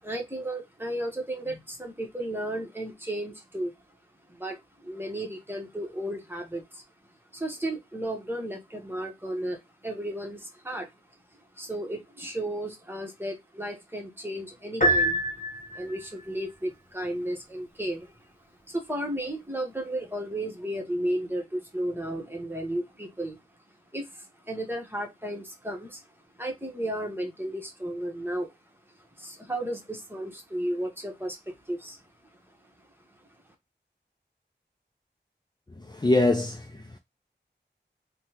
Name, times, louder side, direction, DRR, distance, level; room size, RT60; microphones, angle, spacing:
voice 1, 0.0-3.7 4.3-6.8 7.3-10.9 11.5-15.2 15.7-18.3 18.7-23.4 23.9-26.0 26.3-28.5 29.0-32.0 32.8-32.9, right 1 dB, 10° right, 1.0 m, -34 dB
Piano, 14.8-16.1, right 1 dB, 45° left, 1.0 m, -25 dB
voice 2, 35.8-37.0, left 2 dB, 25° left, 0.4 m, -24 dB
3.4 x 2.2 x 2.9 m
wide cardioid pair, 40°, 19 cm